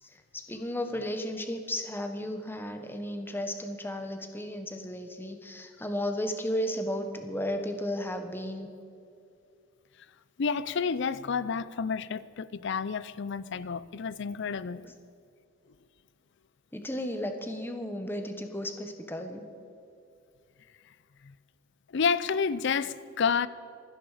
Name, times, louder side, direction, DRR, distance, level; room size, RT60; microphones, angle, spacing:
voice 1, 0.0-8.7 14.8-14.9 16.7-19.4, left 1 dB, 10° left, 1.2 m, -34 dB
voice 2, 10.4-14.8 21.2-21.3 21.9-23.5, left 5 dB, 60° left, 0.5 m, -30 dB
26.0 x 10.0 x 5.0 m
head